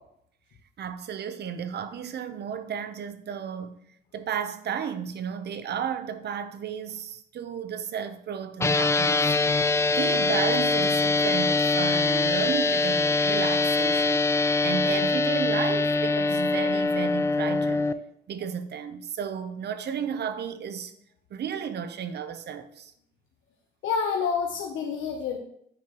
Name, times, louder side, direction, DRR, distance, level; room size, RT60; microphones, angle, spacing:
voice 1, 0.8-3.7 4.1-14.2 14.6-17.9 18.3-20.9 21.3-22.9, right 7 dB, 55° right, 0.7 m, -33 dB
sound 1, 8.6-17.9, left 3 dB, 15° left, 0.3 m, -23 dB
voice 2, 23.8-25.4, left 6 dB, 75° left, 0.8 m, -28 dB
9.0 x 4.8 x 3.0 m
cardioid pair, 90°, 20 cm